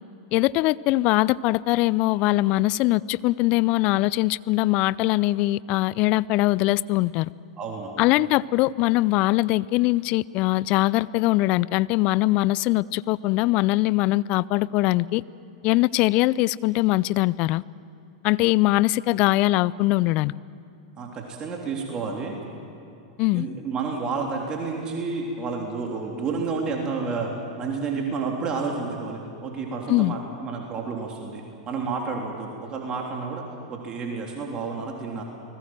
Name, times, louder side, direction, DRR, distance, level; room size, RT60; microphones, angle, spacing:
voice 1, 0.3-7.3 8.0-15.2 15.6-17.6 18.2-20.3 23.2-23.5 29.9-30.2, left 18 dB, 45° left, 21 dB, 0.5 m, -22 dB
voice 2, 7.6-8.0 21.0-22.3 23.3-27.3 27.6-33.4 33.7-35.2, right 4 dB, 30° right, 0 dB, 3.4 m, -30 dB
30.0 x 20.0 x 7.6 m, 2.7 s
hypercardioid pair, 95°, 3 cm